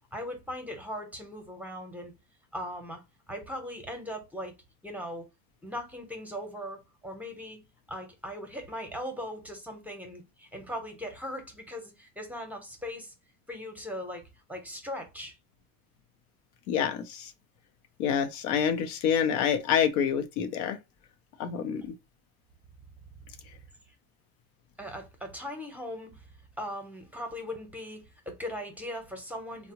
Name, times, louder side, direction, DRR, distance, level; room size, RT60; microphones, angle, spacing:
voice 1, 0.1-2.1 2.5-3.0 3.3-4.6 4.8-5.3 5.6-7.6 7.9-13.1 13.5-14.2 14.5-15.3 21.4-21.8 23.9-24.0 24.8-26.3 26.6-29.7, equal, 5° right, 0.7 m, -39 dB
voice 2, 16.7-17.3 18.0-20.8 21.4-21.9, left 8 dB, 90° left, 0.7 m, -27 dB
3.5 x 2.1 x 2.8 m
supercardioid pair, 110°, 43 cm